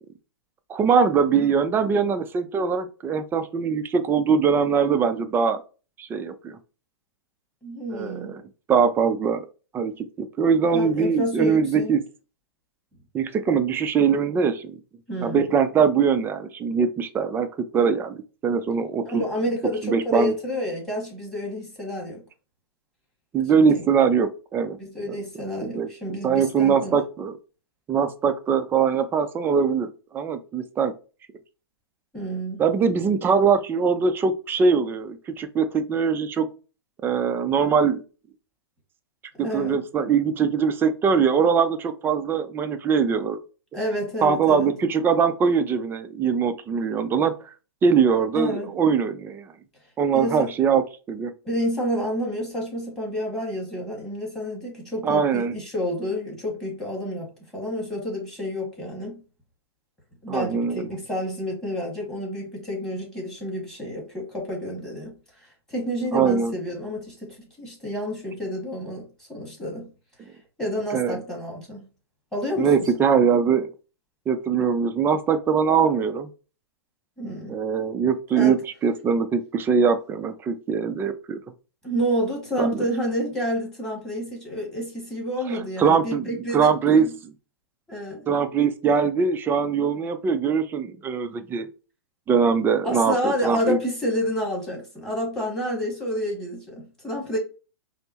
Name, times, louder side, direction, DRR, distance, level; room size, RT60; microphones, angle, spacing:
voice 1, 0.7-5.6 6.0-6.6 7.9-8.4 8.7-9.4 9.7-12.0 13.1-14.7 15.2-17.5 17.7-19.2 19.8-20.3 23.3-24.8 25.1-25.2 25.6-27.4 27.9-30.9 32.6-36.5 37.0-38.0 39.5-43.4 44.2-47.4 47.8-49.5 50.0-51.3 55.0-55.6 60.3-60.9 66.1-66.6 70.9-71.2 72.6-73.7 74.3-76.3 77.5-81.4 82.6-82.8 85.5-87.3 88.3-91.7 92.3-93.8, right 6 dB, 15° right, 0.4 m, -22 dB
voice 2, 7.6-8.4 10.7-11.9 15.1-15.5 19.0-22.2 23.5-23.8 24.8-27.0 32.1-32.6 39.4-39.8 43.7-44.7 48.3-48.7 50.1-50.5 51.5-59.2 60.2-69.9 70.6-71.8 72.3-72.9 77.2-77.6 78.4-78.6 81.8-87.1 87.9-88.2 92.8-97.4, equal, 5° left, 1.7 m, -29 dB
5.2 x 2.0 x 2.9 m
hypercardioid pair, 130°, 13 cm